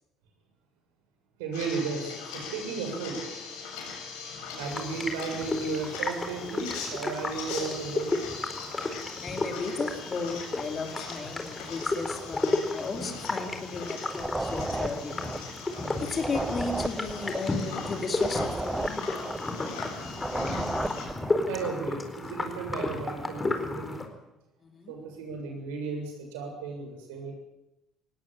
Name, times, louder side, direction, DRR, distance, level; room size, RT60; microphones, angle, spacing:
voice 1, 1.4-3.2 4.6-8.2 21.5-24.0 24.9-27.3, right 4 dB, 90° right, 2 dB, 7.3 m, -34 dB
sound 1, 1.5-21.1, left 5 dB, 85° left, 7.3 m, -41 dB
sound 2, 4.6-24.1, left 2 dB, 20° left, 4.3 m, -33 dB
voice 2, 9.2-15.3 16.0-19.4 24.6-24.9, left 4 dB, 40° left, 4 dB, 4.4 m, -35 dB
sound 3, 14.1-21.5, right 2 dB, 15° right, 1.0 m, -34 dB
19.5 x 17.5 x 9.2 m, 0.91 s
supercardioid pair, 75°, 0 cm